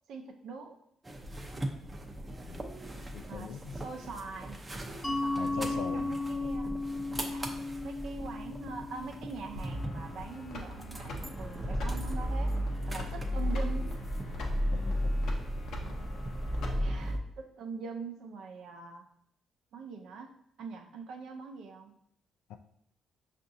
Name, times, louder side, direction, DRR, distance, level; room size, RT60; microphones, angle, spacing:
voice 1, 0.1-0.8 3.3-4.6 5.0-6.7 7.2-7.5 7.8-12.5 12.9-13.9 16.8-19.1 19.7-22.0, right 5 dB, 75° right, 4 dB, 0.5 m, -43 dB
sound 1, 1.0-17.2, equal, 20° right, 0.5 m, -36 dB
voice 2, 3.1-3.7 5.4-6.1 14.7-15.2 22.5-22.6, left 8 dB, 90° left, 7 dB, 0.3 m, -41 dB
Mallet percussion, 5.0-10.4, left 2 dB, 25° left, 0.7 m, -36 dB
sound 2, 9.5-17.2, left 1 dB, 75° left, 0.7 m, -45 dB
5.6 x 2.5 x 2.6 m, 0.72 s
cardioid pair, 90°, 0 cm